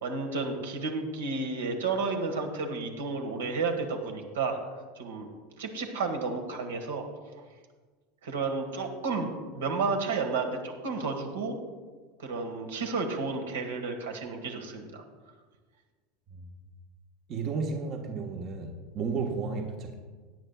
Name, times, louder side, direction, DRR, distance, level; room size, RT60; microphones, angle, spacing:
voice 1, 0.0-4.6 5.0-5.3 5.6-7.0 8.2-9.3 9.5-11.6 12.2-15.0, right 4 dB, 75° right, 3 dB, 1.6 m, -32 dB
voice 2, 17.3-19.9, right 4 dB, 45° right, 2 dB, 1.2 m, -33 dB
17.5 x 9.9 x 2.4 m, 1.4 s
figure-of-eight pair, 80°, 0 cm